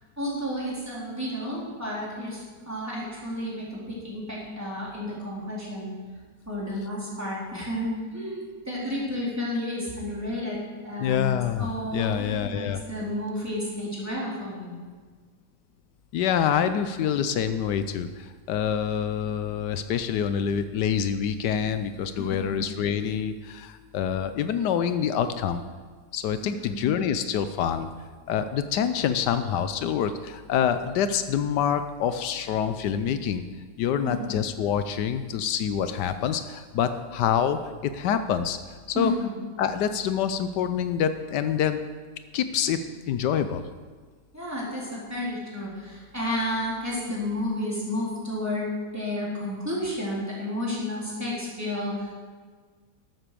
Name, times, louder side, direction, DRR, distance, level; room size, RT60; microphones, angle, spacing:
voice 1, 0.2-5.9 6.5-14.8 22.1-22.6 26.4-26.8 34.0-34.4 38.9-39.4 44.3-52.1, left 1 dB, 10° right, -6 dB, 3.8 m, -31 dB
voice 2, 11.0-12.8 16.1-25.6 26.1-27.9 28.3-33.4 33.8-39.1 39.6-41.8 42.3-42.8 43.1-43.7, left 8 dB, 85° left, 10 dB, 1.3 m, -26 dB
12.0 x 8.1 x 6.8 m, 1.5 s
omnidirectional pair, 1.8 m